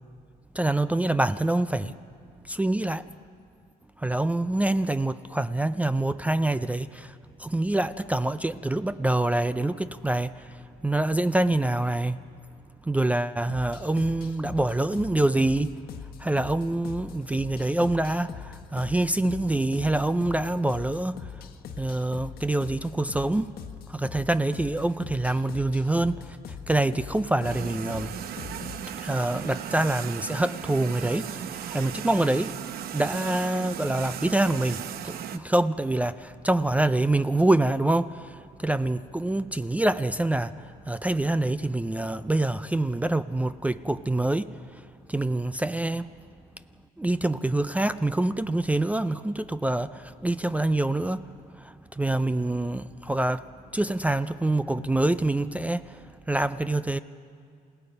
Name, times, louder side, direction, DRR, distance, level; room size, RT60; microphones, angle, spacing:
voice 1, 0.6-1.9 2.5-3.0 4.0-7.1 7.4-10.3 10.8-12.2 12.9-15.7 16.2-21.2 21.8-23.5 23.9-26.2 26.7-28.1 29.0-31.3 31.7-32.5 32.9-36.1 36.4-38.1 38.6-40.5 40.9-44.5 45.1-46.1 47.0-49.9 50.2-51.2 52.0-53.4 53.7-55.8 56.3-57.0, right 2 dB, 10° right, 0.4 m, -25 dB
sound 1, 13.5-28.8, left 7 dB, 65° left, 1.3 m, -41 dB
Red Spouter Fumarole, 27.4-35.4, right 9 dB, 65° right, 0.9 m, -36 dB
28.0 x 17.0 x 5.4 m
cardioid pair, 110°, 17 cm